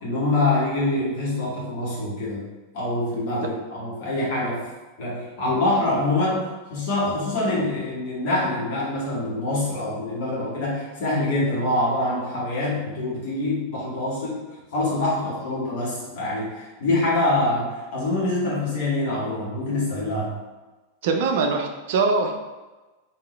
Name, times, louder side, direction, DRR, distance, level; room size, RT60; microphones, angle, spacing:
voice 1, 0.0-2.4 2.7-4.6 5.0-6.4 6.7-14.3 14.7-20.4, left 2 dB, 50° left, -6 dB, 1.4 m, -25 dB
voice 2, 21.0-22.3, right 4 dB, 55° right, 4 dB, 0.4 m, -22 dB
3.6 x 2.7 x 3.2 m, 1.2 s
figure-of-eight pair, 90°, 0 cm